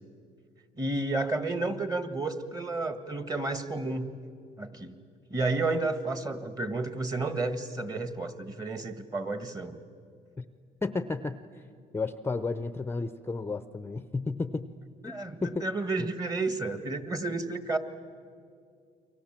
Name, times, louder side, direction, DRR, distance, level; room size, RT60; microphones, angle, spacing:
voice 1, 0.8-4.2 4.6-5.0 5.3-9.8 15.0-17.8, right 3 dB, 20° right, 10 dB, 1.6 m, -31 dB
voice 2, 10.8-11.6 11.9-14.7 15.0-15.7 16.0-16.1 17.3-17.4, left 3 dB, 15° left, 12 dB, 0.6 m, -33 dB
29.5 x 24.0 x 7.5 m, 2.3 s
cardioid pair, 110°, 17 cm